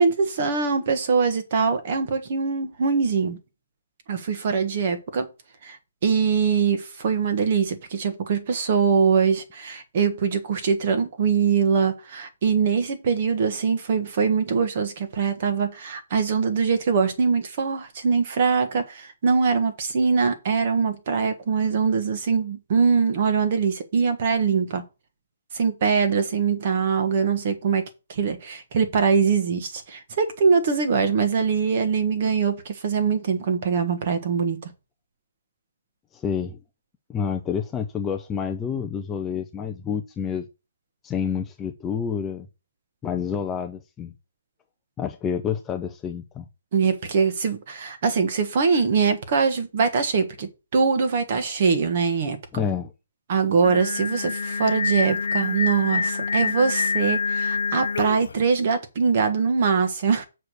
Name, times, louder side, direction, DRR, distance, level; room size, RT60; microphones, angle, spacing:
voice 1, 0.0-3.4 4.1-5.3 5.6-5.8 6.0-24.8 25.5-27.8 28.1-34.6 46.7-52.4 53.3-60.2, right 5 dB, 35° right, 1.4 m, -22 dB
voice 2, 36.1-36.6 37.1-40.5 41.0-42.5 43.0-44.1 45.0-46.5 52.5-52.9, left 7 dB, 10° left, 0.5 m, -28 dB
Singing, 53.6-58.4, left 5 dB, 70° left, 0.5 m, -26 dB
6.6 x 4.9 x 6.2 m
hypercardioid pair, 170°, 0 cm